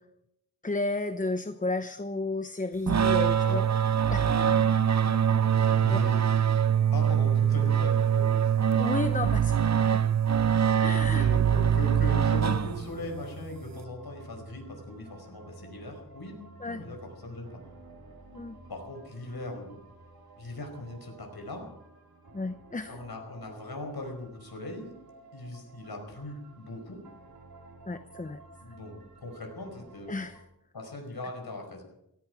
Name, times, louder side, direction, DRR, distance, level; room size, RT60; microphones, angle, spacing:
voice 1, 0.6-3.6 4.1-4.3 5.9-6.0 8.7-9.6 10.8-11.3 16.6-16.8 18.3-18.6 22.3-23.0 27.9-28.4 30.1-30.4, left 3 dB, 20° left, 11 dB, 0.8 m, -32 dB
sound 1, 2.9-13.1, right 8 dB, 45° right, 0.6 m, -23 dB
voice 2, 4.2-4.6 5.7-6.2 6.9-8.6 11.1-17.6 18.7-19.8 20.4-21.7 22.9-25.0 25.3-27.0 28.6-29.0 29.2-30.2 30.7-31.8, left 1 dB, 80° left, 3 dB, 5.0 m, -39 dB
sound 2, 12.6-30.4, right 2 dB, 75° right, 3.6 m, -52 dB
17.0 x 16.5 x 4.9 m, 0.81 s
wide cardioid pair, 60°, 37 cm